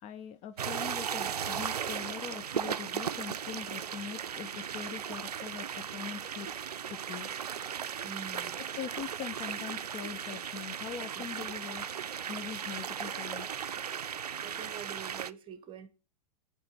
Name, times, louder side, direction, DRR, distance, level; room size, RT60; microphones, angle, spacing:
voice 1, 0.0-6.5 6.9-7.5 8.8-12.0 12.3-13.6, left 8 dB, 30° left, 0.6 m, -42 dB
sound 1, 0.6-15.3, right 8 dB, 80° right, 0.4 m, -37 dB
voice 2, 8.0-8.6 11.1-11.3 14.4-15.9, right 7 dB, 25° right, 1.0 m, -45 dB
8.5 x 3.3 x 5.9 m
figure-of-eight pair, 100°, 20 cm